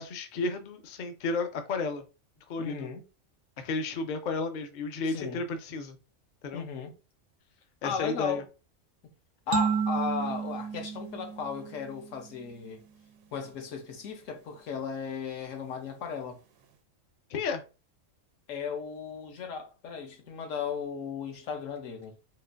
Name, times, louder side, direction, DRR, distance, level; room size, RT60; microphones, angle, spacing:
voice 1, 0.0-2.0 2.5-2.9 3.6-6.0 6.4-6.6 7.8-8.4 17.3-17.6, left 3 dB, 60° left, 0.5 m, -32 dB
voice 2, 2.6-3.1 5.1-5.4 6.5-6.9 7.8-8.4 9.0-9.1 9.5-12.8 13.3-16.4 18.5-22.1, left 6 dB, 75° left, 1.1 m, -36 dB
sound 1, 9.5-12.2, right 6 dB, 85° right, 1.0 m, -31 dB
3.7 x 2.4 x 2.5 m
omnidirectional pair, 1.3 m